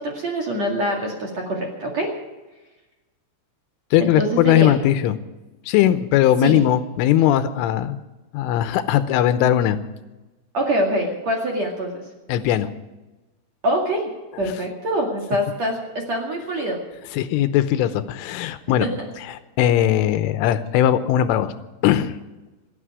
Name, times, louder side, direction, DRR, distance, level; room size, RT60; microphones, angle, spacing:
voice 1, 0.0-2.1 4.0-4.8 6.4-6.6 10.5-12.0 13.6-14.1 14.4-16.8 18.8-18.9, right 1 dB, 45° right, 0 dB, 2.6 m, -24 dB
voice 2, 3.9-5.2 5.7-8.0 8.3-9.8 12.3-12.7 17.1-18.9 19.3-21.5 21.8-22.2, left 11 dB, 85° left, 11 dB, 3.3 m, -19 dB
27.5 x 9.6 x 4.9 m, 1.1 s
omnidirectional pair, 5.6 m